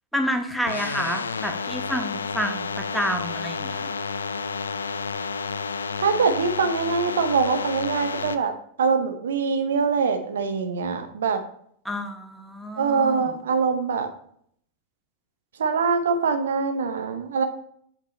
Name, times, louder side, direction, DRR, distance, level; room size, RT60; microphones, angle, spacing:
voice 1, 0.1-2.7 2.9-3.9 11.8-13.3, equal, ahead, 5 dB, 0.8 m, -29 dB
sound 1, 0.7-8.4, left 5 dB, 75° left, 0.4 m, -30 dB
voice 2, 6.0-8.5 8.8-11.4 12.8-14.1 15.6-17.4, right 5 dB, 65° right, 7 dB, 0.7 m, -23 dB
8.0 x 4.7 x 3.8 m, 0.64 s
figure-of-eight pair, 90°, 0 cm